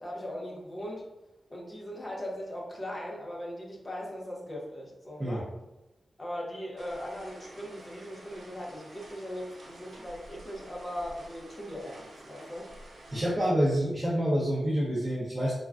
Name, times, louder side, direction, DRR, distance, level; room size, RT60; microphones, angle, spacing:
voice 1, 0.0-1.0 1.5-5.5 6.2-12.7, equal, 30° left, -3 dB, 0.7 m, -39 dB
sound 1, 6.8-13.2, right 1 dB, 85° right, 0.7 m, -50 dB
voice 2, 13.1-15.5, equal, 25° right, -7 dB, 0.7 m, -27 dB
3.4 x 2.2 x 2.4 m, 0.98 s
wide cardioid pair, 110°, 0 cm